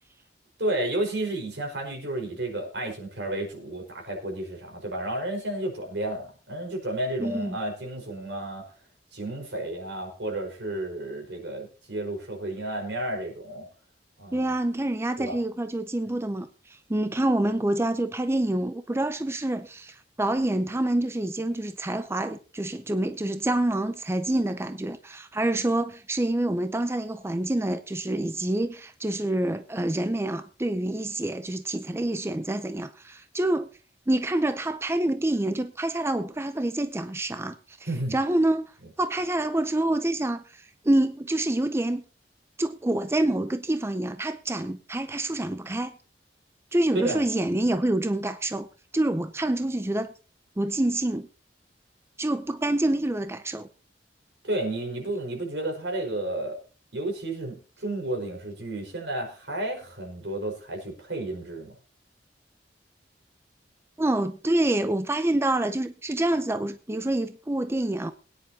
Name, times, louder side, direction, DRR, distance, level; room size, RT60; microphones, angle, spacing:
voice 1, 0.6-8.6 9.1-13.7 14.2-14.5 15.2-15.4 37.9-38.1 46.9-47.2 54.4-56.6 56.9-61.7, right 1 dB, 85° right, 4.9 m, -32 dB
voice 2, 7.2-7.6 14.3-33.7 34.1-37.8 38.1-38.7 39.0-42.0 42.6-46.0 46.7-48.7 48.9-50.1 50.6-51.3 52.2-53.7 64.0-68.1, right 1 dB, 15° right, 0.5 m, -27 dB
22.0 x 9.9 x 2.8 m
head